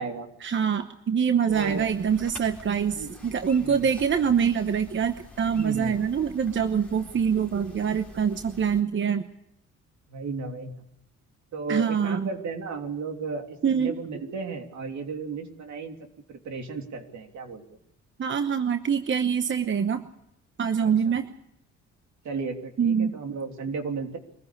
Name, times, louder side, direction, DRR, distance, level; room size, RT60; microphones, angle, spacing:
voice 1, 0.4-9.2 11.7-12.3 13.6-13.9 18.2-20.1 20.6-21.3 22.8-23.1, right 7 dB, 40° right, 9 dB, 1.0 m, -25 dB
sound 1, 1.5-8.8, left 2 dB, 5° left, 4.0 m, -47 dB
voice 2, 1.5-1.9 2.9-3.1 3.6-3.9 5.5-6.1 10.1-10.7 11.5-16.0 16.3-17.6 20.8-21.2 22.2-24.2, right 4 dB, 70° right, 4 dB, 3.2 m, -34 dB
24.0 x 15.0 x 8.5 m, 0.77 s
cardioid pair, 90°, 30 cm